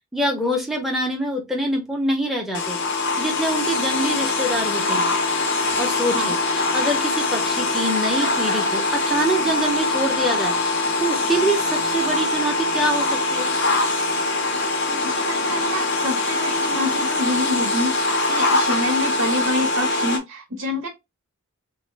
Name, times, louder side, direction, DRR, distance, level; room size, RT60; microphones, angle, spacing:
voice 1, 0.1-2.8 3.2-5.1 5.8-10.5 11.0-13.5, right 1 dB, ahead, 0.7 m, -25 dB
sound 1, 2.5-20.2, left 2 dB, 55° left, 0.6 m, -23 dB
voice 2, 14.9-20.9, left 1 dB, 70° right, 0.8 m, -27 dB
3.0 x 2.1 x 3.1 m
head